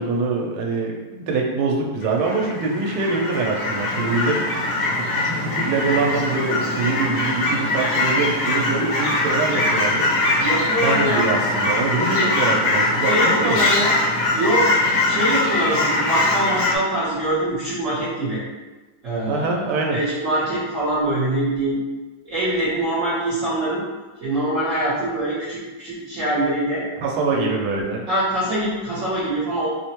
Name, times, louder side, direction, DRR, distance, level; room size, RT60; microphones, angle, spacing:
voice 1, 0.0-4.4 5.1-10.1 10.8-13.8 19.3-20.0 27.0-28.0, right 3 dB, 90° right, 0 dB, 1.5 m, -24 dB
Fowl / Chirp tweet, 2.0-16.8, left 2 dB, 65° left, 1.1 m, -22 dB
voice 2, 10.3-11.3 13.0-13.9 14.3-18.4 19.0-21.8 22.2-23.8 24.2-26.8 27.4-27.5 28.1-29.7, right 1 dB, 50° right, -11 dB, 1.1 m, -24 dB
4.7 x 2.1 x 2.9 m, 1.2 s
omnidirectional pair, 2.3 m